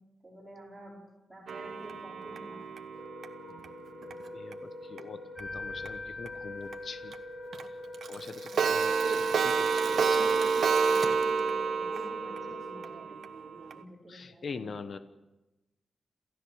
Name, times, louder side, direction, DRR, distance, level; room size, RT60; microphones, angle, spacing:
voice 1, 0.2-1.0 1.3-2.6 9.8-13.1 13.4-14.9, right 1 dB, 10° right, -6 dB, 5.2 m, -49 dB
Clock, 1.5-4.5 5.0-5.1 5.4-5.5 5.9-6.0 6.3-6.4 6.7-6.8 7.1-7.2 7.5-7.6 7.9-13.8, right 5 dB, 70° right, 1.2 m, -29 dB
Wind instrument woodwind instrument, 2.9-13.0, left 1 dB, 70° left, 5.1 m, -45 dB
voice 2, 4.3-7.2 8.1-10.4 14.1-15.0, left 5 dB, 55° left, 10 dB, 1.1 m, -44 dB
sound 1, 5.4-8.2, left 3 dB, 5° left, 4.5 m, -43 dB
27.5 x 15.5 x 6.5 m, 1.0 s
wide cardioid pair, 145°, 0 cm